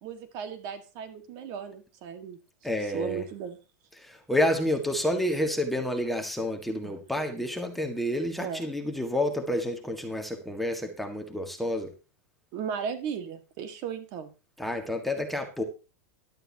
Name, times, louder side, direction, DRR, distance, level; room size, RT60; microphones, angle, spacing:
voice 1, 0.0-2.4 2.8-3.6 6.8-7.0 8.4-8.6 12.5-14.3, right 7 dB, 50° right, 8 dB, 1.7 m, -36 dB
voice 2, 2.6-3.2 4.0-11.9 14.6-15.6, left 1 dB, ahead, 3 dB, 1.6 m, -29 dB
16.0 x 11.5 x 2.9 m, 0.31 s
supercardioid pair, 140°, 9 cm